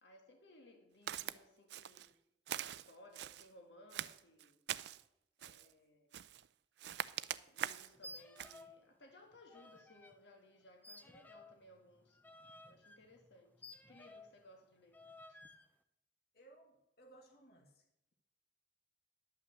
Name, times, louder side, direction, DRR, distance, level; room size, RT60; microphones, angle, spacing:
voice 1, 0.0-2.1 2.6-4.6 5.4-6.1 7.5-12.2 12.6-13.5 13.9-15.0 15.3-15.4, left 1 dB, 85° left, 1.7 m, -62 dB
Walk footsteps, 1.1-1.4 1.7-2.1 2.5-3.5 3.9-5.0 5.4-5.7 6.1-6.5 6.8-7.9 8.4-8.6, right 10 dB, 70° right, 0.4 m, -43 dB
sound 1, 7.9-8.8 9.1-10.2 10.8-14.4 14.9-15.7, left 1 dB, 10° left, 0.5 m, -56 dB
voice 2, 16.3-17.8, right 2 dB, 60° left, 1.7 m, -62 dB
11.0 x 5.7 x 7.8 m
head